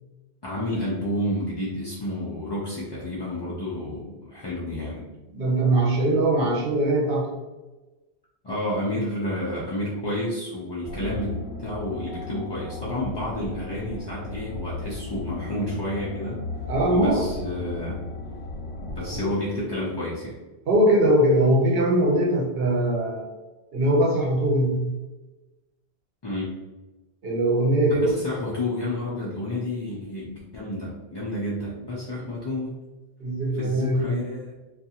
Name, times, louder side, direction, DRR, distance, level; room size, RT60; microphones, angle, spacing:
voice 1, 0.4-5.1 8.4-16.4 16.9-18.0 18.8-20.4 26.2-26.5 27.8-32.7 33.6-34.5, left 1 dB, 40° left, -7 dB, 0.4 m, -30 dB
voice 2, 5.3-7.3 16.7-17.3 20.7-23.3 23.7-24.9 27.2-28.1 32.2-32.3 33.2-34.0, right 1 dB, 65° right, -3 dB, 0.9 m, -21 dB
sound 1, 10.8-19.3, left 2 dB, 75° left, 1.0 m, -35 dB
2.6 x 2.4 x 2.7 m, 1.1 s
omnidirectional pair, 1.1 m